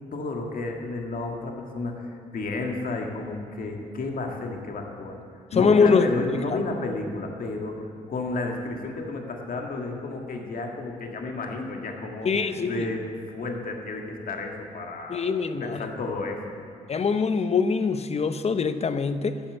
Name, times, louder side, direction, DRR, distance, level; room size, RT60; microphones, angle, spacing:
voice 1, 0.1-5.2 5.5-7.8 8.1-13.0 13.3-16.6, left 3 dB, 60° left, 2 dB, 1.8 m, -32 dB
voice 2, 5.6-6.1 6.5-6.6 12.2-12.9 15.1-15.9 16.9-19.4, left 5 dB, 40° left, 11 dB, 0.8 m, -23 dB
11.0 x 7.7 x 8.2 m, 2.5 s
supercardioid pair, 55°, 17 cm